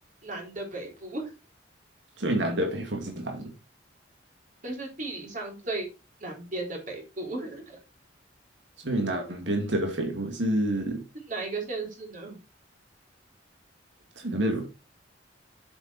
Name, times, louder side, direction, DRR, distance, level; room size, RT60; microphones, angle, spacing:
voice 1, 0.2-1.3 4.6-5.9 6.2-7.8 11.3-12.4, right 2 dB, 45° right, 3.6 m, -35 dB
voice 2, 2.2-3.5 8.8-11.0 14.2-14.6, right 1 dB, 75° right, 2.3 m, -28 dB
7.8 x 7.4 x 4.2 m
head